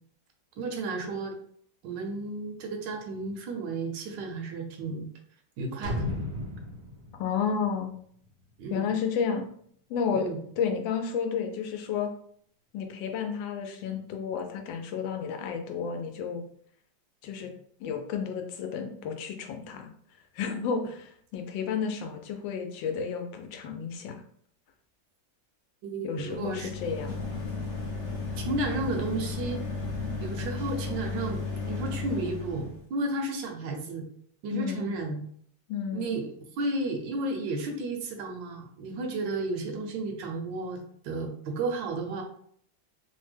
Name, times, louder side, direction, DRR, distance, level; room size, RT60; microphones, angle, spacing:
voice 1, 0.6-1.3 1.8-5.1 5.6-6.1 8.6-8.9 10.1-10.4 25.8-26.7 28.3-29.8 30.2-34.1 34.4-35.2 35.9-36.3 36.6-42.2, right 2 dB, 75° right, 4 dB, 1.3 m, -33 dB
sound 1, 5.8-8.6 9.0-9.1, left 1 dB, 60° right, 0.6 m, -35 dB
voice 2, 7.2-7.9 8.7-9.5 9.9-10.3 10.6-12.1 12.7-16.4 17.2-17.5 17.8-19.9 20.3-24.2 26.0-27.2 34.5-34.9 35.7-36.2, left 6 dB, 85° left, 5 dB, 1.3 m, -31 dB
sound 2, 26.2-32.8, left 4 dB, 55° left, 0.8 m, -34 dB
3.3 x 2.1 x 3.2 m, 0.63 s
omnidirectional pair, 2.0 m